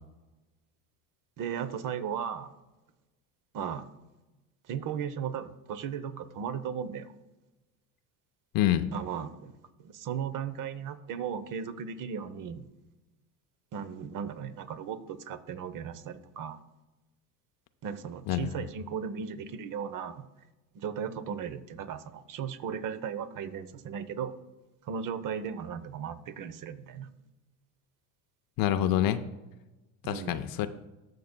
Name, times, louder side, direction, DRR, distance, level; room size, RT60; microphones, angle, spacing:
voice 1, 1.4-2.5 3.5-3.9 4.7-7.1 8.9-9.5 9.8-12.7 13.7-16.6 17.8-20.2 20.7-24.3 24.8-27.1 30.0-30.4, right 7 dB, 45° right, 13 dB, 0.8 m, -36 dB
voice 2, 8.5-8.9 18.3-18.5 28.6-29.2 30.1-30.7, left 12 dB, 50° left, 10 dB, 0.6 m, -26 dB
19.0 x 6.5 x 2.2 m, 1.1 s
supercardioid pair, 95°, 45 cm